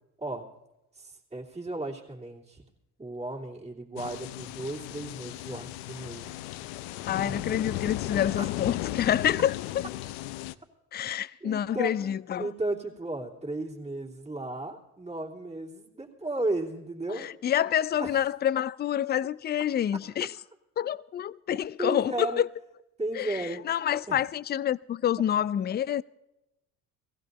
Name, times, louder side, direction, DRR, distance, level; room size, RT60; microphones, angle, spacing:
voice 1, 0.2-0.5 0.9-2.6 3.0-6.4 7.2-7.4 8.4-8.5 11.4-12.1 12.4-17.3 18.0-18.2 21.8-22.4 23.0-23.6 24.1-24.2, right 2 dB, 15° right, 2.9 m, -34 dB
sound 1, 4.0-10.5, left 16 dB, 90° left, 0.6 m, -35 dB
voice 2, 7.1-9.6 10.9-12.5 17.1-20.3 20.8-22.5 23.2-26.0, left 10 dB, 25° left, 0.4 m, -28 dB
18.0 x 15.5 x 4.1 m
supercardioid pair, 85°, 37 cm